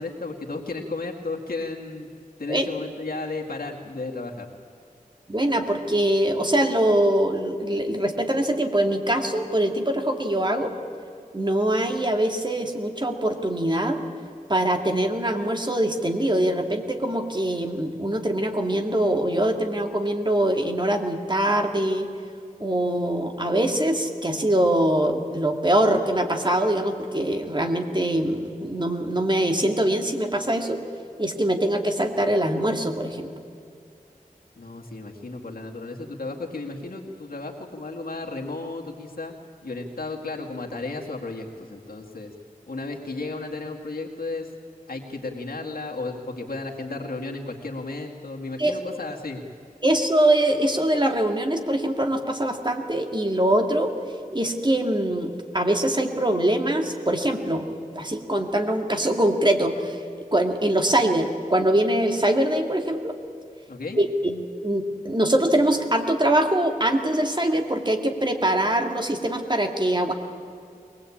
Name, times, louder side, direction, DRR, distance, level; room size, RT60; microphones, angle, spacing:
voice 1, 0.0-2.1 2.4-4.5 34.6-39.3 39.6-42.3 42.7-44.5 44.9-49.4 63.7-64.0, left 3 dB, 80° left, -1 dB, 2.2 m, -34 dB
voice 2, 5.3-10.7 11.3-14.0 14.5-22.1 22.6-30.8 31.2-33.3 48.6-48.7 49.8-53.9 54.3-57.7 58.0-60.0 60.3-63.2 64.0-70.1, right 1 dB, 30° right, 4 dB, 2.2 m, -23 dB
23.0 x 19.0 x 8.7 m, 2.4 s
wide cardioid pair, 65°, 15 cm